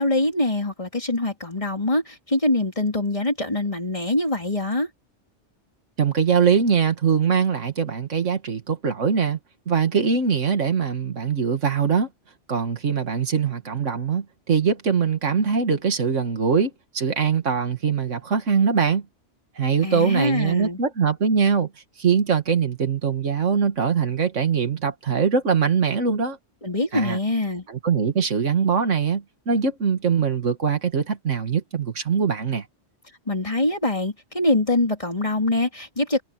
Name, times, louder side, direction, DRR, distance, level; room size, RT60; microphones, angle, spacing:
voice 1, 0.0-4.9 19.8-20.8 26.6-27.6 33.3-36.2, left 2 dB, 25° left, 4.2 m, -24 dB
voice 2, 6.0-9.4 9.7-12.1 12.5-19.0 19.6-21.7 22.0-26.4 26.9-27.2 27.7-32.7, right 6 dB, 80° right, 2.2 m, -22 dB
omnidirectional pair, 1.3 m